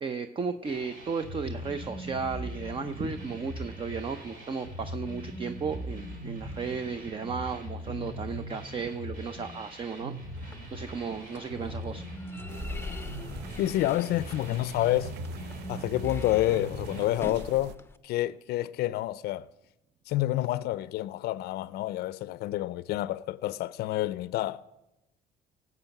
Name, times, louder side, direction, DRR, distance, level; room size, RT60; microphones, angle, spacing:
voice 1, 0.0-10.1 10.4-12.1, right 5 dB, 30° right, 0.7 m, -34 dB
sound 1, 0.6-17.0, equal, 55° right, 3.9 m, -40 dB
sound 2, 10.4-18.0, left 3 dB, 15° left, 0.6 m, -45 dB
sound 3, 12.5-17.7, right 10 dB, 85° right, 0.6 m, -45 dB
voice 2, 13.6-15.1 15.7-19.5 20.1-24.6, left 15 dB, 70° left, 0.4 m, -28 dB
18.0 x 8.1 x 5.9 m
cardioid pair, 110°, 17 cm